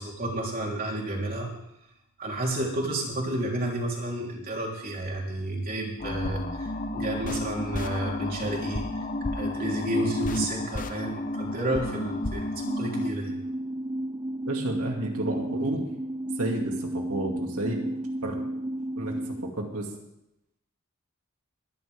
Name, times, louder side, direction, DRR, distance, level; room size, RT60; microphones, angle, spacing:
voice 1, 0.0-1.5 2.2-8.8 9.3-13.3, right 1 dB, 45° right, -2 dB, 3.6 m, -31 dB
sound 1, 6.0-13.1, left 2 dB, 40° left, 0.9 m, -31 dB
sound 2, 12.6-19.5, right 1 dB, 20° right, 0.4 m, -32 dB
voice 2, 14.5-15.8 16.4-17.8 18.2-18.4 19.0-19.1 19.6-19.9, right 1 dB, 90° right, 0 dB, 2.3 m, -31 dB
21.5 x 11.0 x 3.6 m, 0.84 s
head